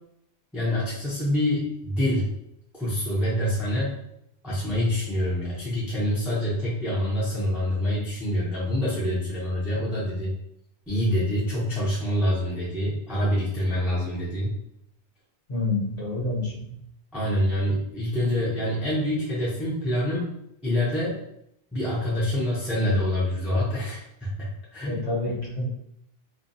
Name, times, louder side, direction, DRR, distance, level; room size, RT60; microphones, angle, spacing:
voice 1, 0.5-2.3 2.7-4.0 4.4-10.3 10.9-14.5 17.1-20.3 20.6-21.2 21.7-25.0, left 1 dB, ahead, -7 dB, 0.6 m, -26 dB
voice 2, 15.5-16.7 24.9-25.7, left 2 dB, 45° left, -7 dB, 1.0 m, -28 dB
2.4 x 2.3 x 2.6 m, 0.75 s
omnidirectional pair, 1.1 m